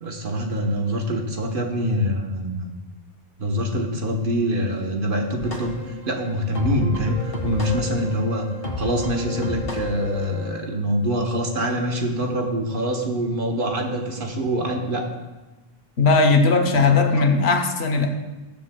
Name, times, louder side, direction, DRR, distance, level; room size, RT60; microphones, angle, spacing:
voice 1, 0.0-2.7 3.4-5.8 6.1-8.5 8.8-15.1 16.7-16.9 17.1-17.2, equal, 60° right, 2 dB, 1.3 m, -25 dB
sound 1, 5.4-10.6, left 2 dB, 65° left, 1.8 m, -32 dB
voice 2, 16.0-18.1, left 4 dB, 85° left, 6 dB, 1.2 m, -18 dB
19.5 x 7.0 x 2.3 m, 1.1 s
omnidirectional pair, 1.0 m